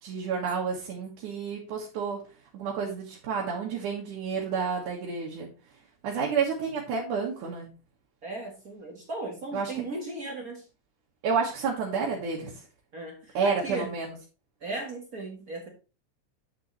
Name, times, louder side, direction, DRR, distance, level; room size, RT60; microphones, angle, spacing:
voice 1, 0.0-2.2 2.5-5.5 6.0-7.7 9.5-9.7 11.2-12.5 13.3-14.1, right 5 dB, 75° right, -3 dB, 3.1 m, -30 dB
voice 2, 8.2-10.6 12.9-13.9 14.6-15.7, right 2 dB, 40° right, 1 dB, 1.3 m, -37 dB
9.3 x 7.0 x 3.2 m, 0.34 s
omnidirectional pair, 3.6 m